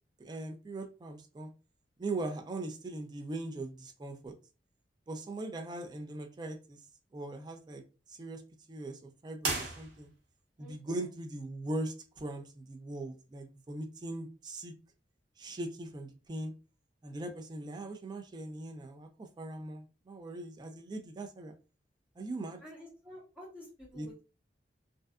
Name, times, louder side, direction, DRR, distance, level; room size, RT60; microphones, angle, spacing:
voice 1, 0.2-1.5 2.0-4.3 5.1-6.8 7.1-7.8 8.1-8.4 8.7-10.1 10.6-14.7 15.4-16.5 17.0-21.5 22.2-22.6 23.9-24.1, right 2 dB, 25° right, 6 dB, 0.3 m, -40 dB
sound 1, 9.4-10.4, right 3 dB, 80° right, 0.8 m, -36 dB
voice 2, 10.6-11.1 22.6-24.2, equal, 5° right, -6 dB, 0.9 m, -50 dB
2.6 x 2.3 x 2.2 m, 0.32 s
head